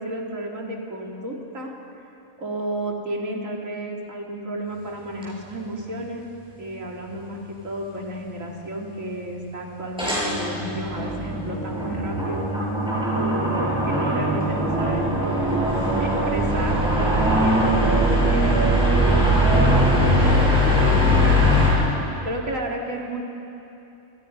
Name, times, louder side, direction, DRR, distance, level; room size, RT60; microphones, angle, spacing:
voice 1, 0.0-1.7 2.4-6.2 6.6-12.5 13.1-15.7 16.0-22.0 22.2-23.2, right 1 dB, 70° right, -1 dB, 3.3 m, -32 dB
sound 1, 5.2-5.3 10.0-21.7, equal, 5° right, 7.4 m, -20 dB
28.5 x 26.5 x 5.5 m, 2.9 s
omnidirectional pair, 1.4 m